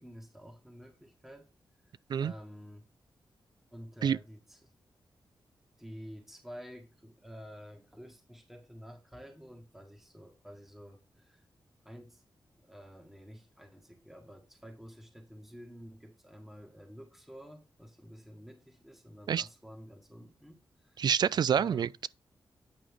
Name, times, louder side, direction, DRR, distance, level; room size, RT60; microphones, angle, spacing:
voice 1, 0.0-1.5 2.2-2.9 3.7-4.6 5.8-11.4 11.8-12.2 12.6-21.1 21.5-21.9, equal, 5° right, 1.5 m, -50 dB
voice 2, 21.0-22.1, right 8 dB, 65° right, 0.4 m, -27 dB
8.9 x 5.1 x 3.5 m
wide cardioid pair, 120°, 8 cm